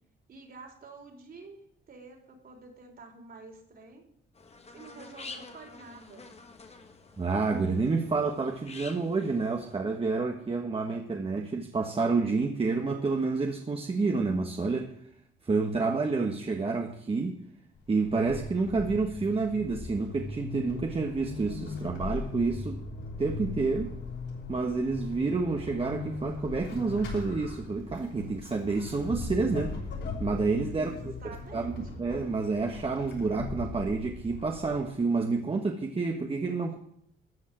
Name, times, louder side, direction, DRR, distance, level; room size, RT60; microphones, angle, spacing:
voice 1, 0.3-1.6 1.9-4.0 4.7-6.3 30.7-31.7, right 3 dB, 50° right, 2 dB, 3.7 m, -48 dB
sound 1, 4.3-9.8, left 4 dB, 30° left, 1.6 m, -48 dB
voice 2, 7.2-14.9 15.4-17.4 17.9-22.8 23.2-23.9 24.5-29.8 30.2-30.9 31.2-36.8, right 4 dB, 30° right, 2 dB, 1.4 m, -29 dB
Vehicle / Accelerating revving vroom / Squeak, 17.8-35.0, left 3 dB, 65° left, 5.9 m, -39 dB
14.0 x 5.4 x 9.0 m, 0.68 s
cardioid pair, 90°, 20 cm